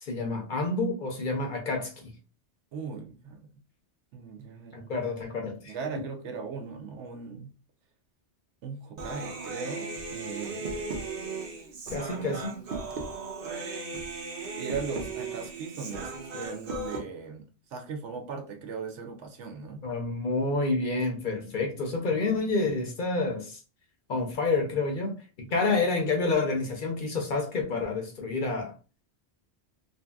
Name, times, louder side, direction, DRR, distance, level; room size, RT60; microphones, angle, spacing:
voice 1, 0.0-2.1 4.7-5.8 11.9-12.6 19.8-23.6 24.1-28.7, left 3 dB, 55° left, 0.6 m, -29 dB
voice 2, 2.7-3.4 4.1-5.0 5.7-7.5 8.6-10.8 12.2-12.4 14.6-19.8 25.6-25.8, right 5 dB, 90° right, 1.0 m, -38 dB
Human voice, 9.0-17.0, right 3 dB, 60° right, 0.7 m, -36 dB
2.7 x 2.6 x 2.2 m
omnidirectional pair, 1.2 m